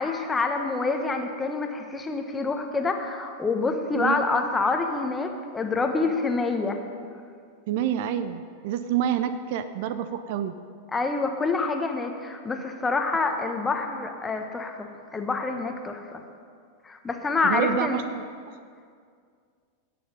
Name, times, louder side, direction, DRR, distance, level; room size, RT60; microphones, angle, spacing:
voice 1, 0.0-6.8 10.9-16.1 16.8-18.0, left 3 dB, 15° left, 5 dB, 1.1 m, -27 dB
voice 2, 7.7-10.5 17.4-18.2, right 9 dB, 50° right, 11 dB, 0.5 m, -27 dB
17.0 x 6.9 x 5.3 m, 2.2 s
figure-of-eight pair, 90°, 0 cm